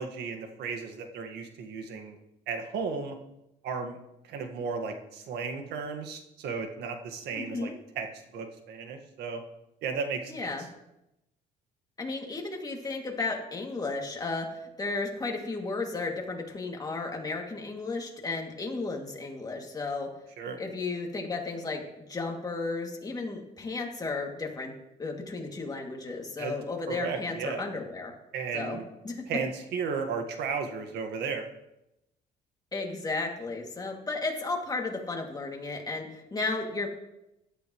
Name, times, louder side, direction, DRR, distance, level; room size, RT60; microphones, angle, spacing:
voice 1, 0.0-2.2 2.5-3.2 3.6-4.0 4.2-8.1 8.3-9.4 9.8-10.5 20.4-20.6 26.4-26.5 26.9-27.6 28.3-28.8 29.3-31.5, right 5 dB, 75° right, 5 dB, 1.7 m, -34 dB
voice 2, 7.4-7.7 10.3-10.6 12.0-20.1 20.6-24.7 25.0-28.1 28.5-28.8 29.0-29.2 32.7-36.9, left 3 dB, 20° left, 1 dB, 2.5 m, -34 dB
16.0 x 12.0 x 3.2 m, 0.88 s
cardioid pair, 110°, 17 cm